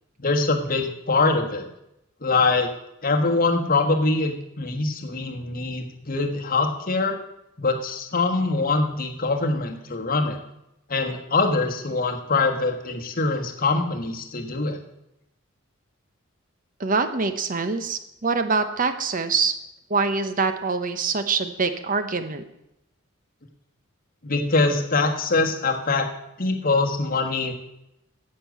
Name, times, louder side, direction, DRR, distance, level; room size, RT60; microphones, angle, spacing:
voice 1, 0.2-1.6 2.2-2.7 3.0-7.2 7.6-10.4 10.9-14.8 24.2-26.1 26.4-27.5, left 3 dB, 45° left, 4 dB, 1.5 m, -23 dB
voice 2, 16.8-19.5 19.9-22.4, right 4 dB, 40° right, 9 dB, 0.9 m, -24 dB
10.0 x 7.7 x 8.3 m, 0.85 s
head